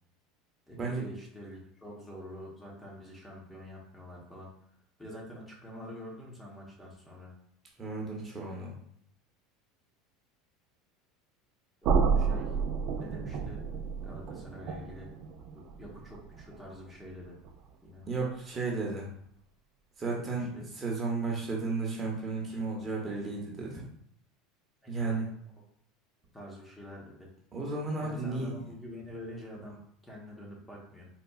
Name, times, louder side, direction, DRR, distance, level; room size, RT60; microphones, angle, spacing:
voice 1, 0.7-4.5 5.0-7.3 11.8-12.6 13.0-13.6 14.0-15.1 15.5-17.4 17.8-18.0 20.2-20.7 24.8-25.3 25.6-25.7 26.3-27.3 28.0-29.8 30.0-31.1, left 1 dB, 10° left, -3 dB, 0.9 m, -46 dB
voice 2, 7.8-8.8 18.1-19.1 20.0-20.5 20.8-23.8 24.9-25.3 27.5-28.5, right 3 dB, 25° right, -2 dB, 0.8 m, -33 dB
sound 1, 11.8-17.7, right 5 dB, 55° right, 0.3 m, -32 dB
4.1 x 2.3 x 2.3 m, 0.67 s
supercardioid pair, 125°, 0 cm